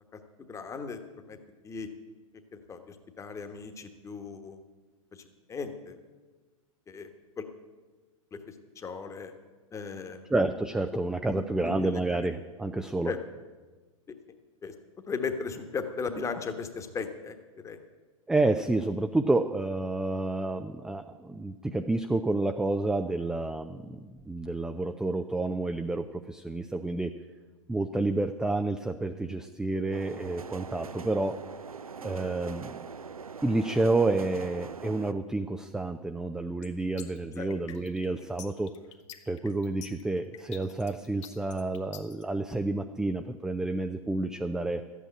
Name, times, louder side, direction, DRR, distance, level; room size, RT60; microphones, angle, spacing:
voice 1, 0.5-1.4 1.6-1.9 2.5-4.6 5.1-6.0 6.9-7.1 7.4-7.5 8.3-9.3 9.7-10.2 11.3-12.0 13.0-13.2 14.6-14.7 15.1-17.3 17.6-17.8 37.4-37.5, left 5 dB, 15° left, 7 dB, 1.2 m, -37 dB
voice 2, 10.3-13.1 18.3-27.1 27.7-31.4 32.0-32.9 33.4-38.7 39.3-44.8, right 2 dB, 5° right, 7 dB, 0.4 m, -29 dB
sound 1, 29.9-35.1, right 5 dB, 80° right, 0.6 m, -42 dB
sound 2, 36.6-42.2, left 10 dB, 55° left, 1.3 m, -47 dB
13.0 x 8.4 x 8.6 m, 1.3 s
figure-of-eight pair, 100°, 18 cm